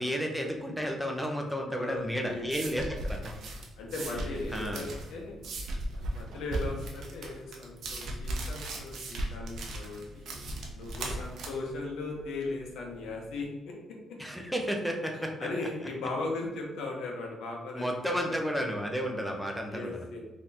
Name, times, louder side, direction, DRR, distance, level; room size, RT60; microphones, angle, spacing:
voice 1, 0.0-3.2 4.5-4.9 14.2-15.3 17.7-20.1, equal, ahead, 1 dB, 0.6 m, -32 dB
voice 2, 1.8-2.6 3.8-5.4 5.9-10.3 10.7-13.7 15.4-18.4 19.7-20.2, left 2 dB, 80° left, 0 dB, 0.8 m, -37 dB
sound 1, 2.0-13.3, right 1 dB, 70° right, 0.7 m, -37 dB
3.7 x 2.9 x 2.6 m, 1.1 s
cardioid pair, 90°, 0 cm